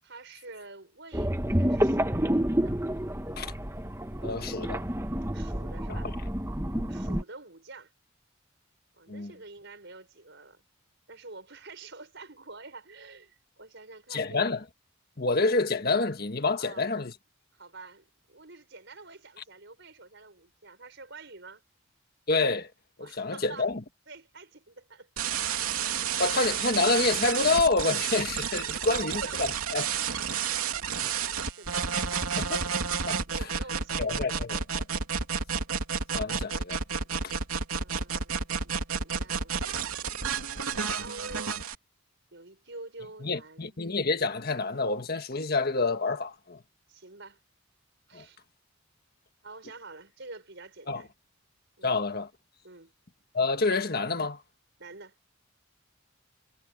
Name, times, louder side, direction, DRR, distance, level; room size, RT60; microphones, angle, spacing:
voice 1, 0.0-2.8 5.3-6.1 6.9-7.9 9.0-10.6 11.1-14.6 16.6-16.8 17.5-21.6 23.0-23.7 24.1-25.3 25.9-26.3 28.6-29.5 30.6-32.3 33.3-34.3 37.8-41.6 42.3-44.0 46.9-47.4 48.1-48.4 49.4-51.1 51.8-52.0 52.6-52.9 54.8-55.2, right 3 dB, 55° right, 6.3 m, -48 dB
sound 1, 1.1-7.2, equal, 10° right, 1.3 m, -29 dB
voice 2, 4.2-4.8 5.9-6.0 6.7-6.9 9.1-9.3 14.1-14.6 15.2-17.1 22.3-22.7 23.0-23.8 26.2-29.9 31.0-31.1 32.4-32.6 33.1-33.2 34.0-34.8 36.1-36.8 37.2-37.3 43.2-46.6 48.1-48.2 50.9-51.0 51.8-52.3 53.3-54.4, left 3 dB, 45° left, 1.6 m, -28 dB
sound 2, 25.2-41.7, right 6 dB, 90° right, 3.1 m, -30 dB
head